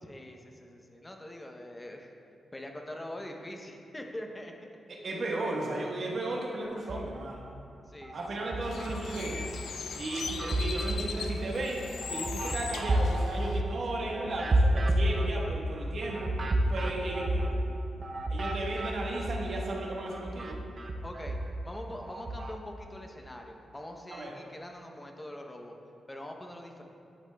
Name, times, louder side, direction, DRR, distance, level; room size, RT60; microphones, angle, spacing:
voice 1, 0.0-2.1 2.5-4.7 7.9-8.5 21.0-21.4 21.6-25.8 26.1-26.8, left 1 dB, 15° left, 3 dB, 0.7 m, -43 dB
voice 2, 4.9-7.4 8.1-9.5 10.0-16.4 16.7-17.5 18.3-20.6 24.1-24.3, right 2 dB, 55° right, -2 dB, 1.2 m, -35 dB
sound 1, 6.8-7.6 8.0-9.6 10.0-19.7 20.0-22.6, right 1 dB, 40° right, 0.6 m, -31 dB
Bird, 8.6-13.6, left 5 dB, 80° left, 0.5 m, -39 dB
11.0 x 7.9 x 2.3 m, 2.6 s
wide cardioid pair, 115°, 0 cm